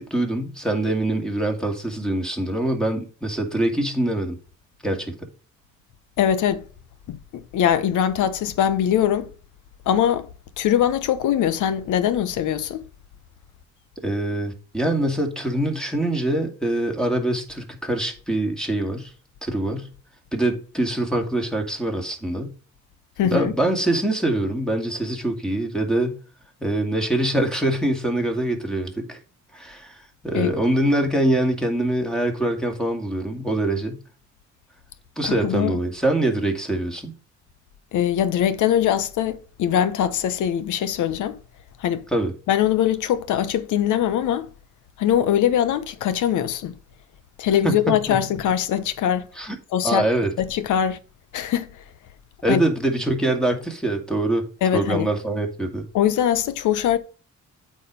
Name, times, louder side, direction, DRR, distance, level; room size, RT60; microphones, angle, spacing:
voice 1, 0.0-4.4 4.8-5.1 14.0-19.1 19.4-19.9 20.3-22.5 23.2-26.2 26.6-29.2 29.5-34.0 35.2-37.1 42.1-42.3 47.6-48.2 49.4-49.6 49.8-50.3 52.4-54.5 54.7-55.8, right 1 dB, ahead, 2.5 m, -24 dB
voice 2, 6.2-6.6 7.1-9.3 9.9-10.3 10.6-12.8 23.2-23.5 30.3-30.5 35.2-35.8 37.9-41.4 41.8-42.0 42.5-44.5 45.0-46.7 47.4-49.3 49.7-50.0 50.4-51.0 51.3-51.8 52.5-52.6 54.6-55.1 55.9-57.0, left 10 dB, 80° left, 1.0 m, -22 dB
8.4 x 5.0 x 5.2 m
cardioid pair, 90°, 30 cm